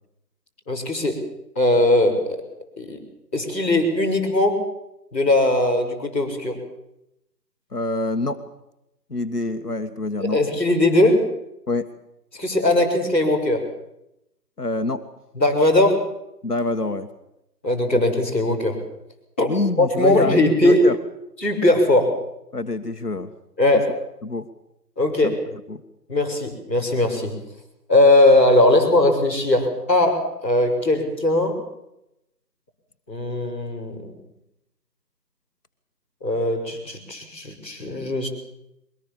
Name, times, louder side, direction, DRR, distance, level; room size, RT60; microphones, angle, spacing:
voice 1, 0.7-1.2 1.5-2.4 2.8-3.0 3.3-4.6 5.1-6.6 10.2-11.3 12.3-13.6 15.3-16.0 17.6-18.8 19.4-19.5 19.8-20.8 21.4-22.2 23.6-23.9 25.0-25.4 26.1-27.4 27.9-31.6 33.1-34.1 36.2-38.3, left 1 dB, 10° left, -12 dB, 3.8 m, -19 dB
voice 2, 7.7-8.4 9.1-10.4 11.7-11.9 14.6-15.0 16.4-17.1 19.4-21.0 22.5-23.3 24.2-24.5 25.2-25.4 25.7-25.8, left 2 dB, 65° left, 7 dB, 1.8 m, -26 dB
23.0 x 19.5 x 7.3 m, 0.85 s
figure-of-eight pair, 175°, 50 cm